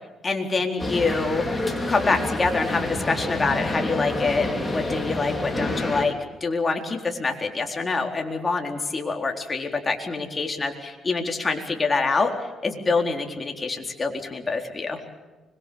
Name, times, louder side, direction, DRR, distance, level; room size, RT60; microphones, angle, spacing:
voice 1, 0.2-1.6 1.9-6.1 6.4-12.3 12.6-15.0, left 3 dB, 30° left, 3 dB, 4.1 m, -25 dB
sound 1, 0.8-6.1, left 2 dB, 10° left, 5.1 m, -28 dB
25.0 x 22.0 x 7.1 m, 1.2 s
cardioid pair, 90°, 0 cm